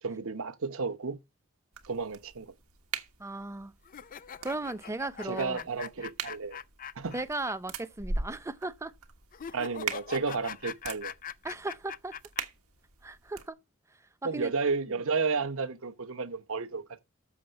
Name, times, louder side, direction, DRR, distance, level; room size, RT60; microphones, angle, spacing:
voice 1, 0.0-1.2 1.9-2.5 5.2-6.6 6.9-7.1 9.5-11.1 14.2-17.0, right 4 dB, 65° right, 0.9 m, -32 dB
sound 1, 1.7-13.5, right 4 dB, 80° right, 1.3 m, -42 dB
voice 2, 3.2-3.7 4.4-5.6 7.1-8.9 11.4-12.2 13.0-13.6 14.3-14.5, right 2 dB, 15° right, 0.5 m, -36 dB
sound 2, 3.8-7.5 7.8-7.9 9.3-12.4, left 8 dB, 40° left, 0.4 m, -42 dB
7.1 x 6.2 x 7.8 m
head